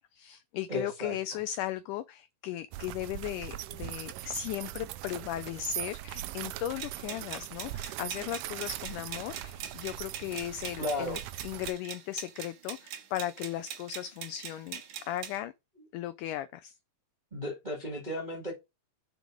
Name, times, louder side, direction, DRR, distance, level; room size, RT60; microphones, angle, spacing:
voice 1, 0.0-15.5 15.9-16.8, left 12 dB, 85° left, 1.8 m, -37 dB
voice 2, 0.7-1.2 10.8-11.2 17.3-18.5, left 1 dB, 20° right, 1.1 m, -34 dB
sound 1, 2.7-11.7, right 14 dB, 85° right, 1.9 m, -41 dB
sound 2, 6.8-15.4, right 8 dB, 65° right, 2.8 m, -42 dB
6.2 x 5.2 x 4.9 m
omnidirectional pair, 4.1 m